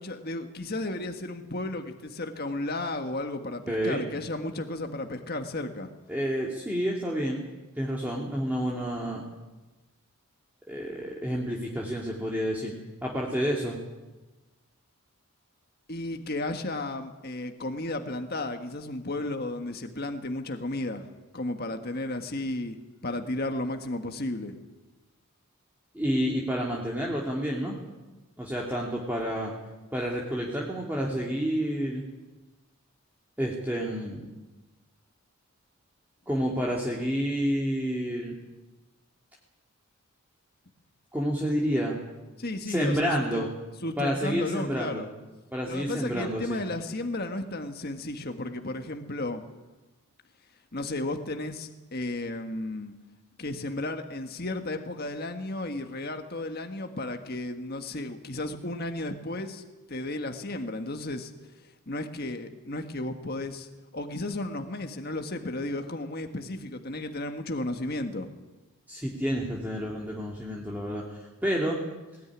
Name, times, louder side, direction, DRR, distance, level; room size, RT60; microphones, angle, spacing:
voice 1, 0.0-5.9 15.9-21.0 21.3-22.8 23.0-24.6 42.4-43.5 43.8-45.1 45.7-49.4 50.7-52.9 53.4-59.6 59.9-61.3 61.9-68.3, left 2 dB, 45° left, 6 dB, 1.6 m, -33 dB
voice 2, 3.7-4.0 6.1-7.4 7.8-9.2 10.7-13.8 25.9-27.8 28.4-29.5 29.9-32.0 33.4-34.2 36.3-38.3 41.1-42.0 42.6-43.5 44.0-45.0 45.5-46.6 68.9-71.8, equal, 10° right, -3 dB, 2.6 m, -29 dB
20.0 x 19.0 x 9.9 m, 1.1 s
head